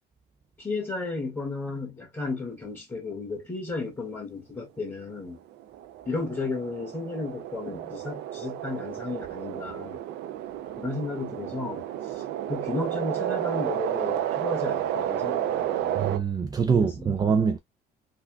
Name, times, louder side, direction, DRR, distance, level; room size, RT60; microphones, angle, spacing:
voice 1, 0.6-5.4 6.1-10.0 10.8-11.8 12.5-16.0 16.7-17.2, left 3 dB, 15° left, 1.8 m, -34 dB
sound 1, 5.4-16.2, right 12 dB, 85° right, 0.5 m, -31 dB
voice 2, 16.0-17.6, right 6 dB, 25° right, 0.3 m, -24 dB
3.5 x 2.4 x 2.3 m
cardioid pair, 110°, 17 cm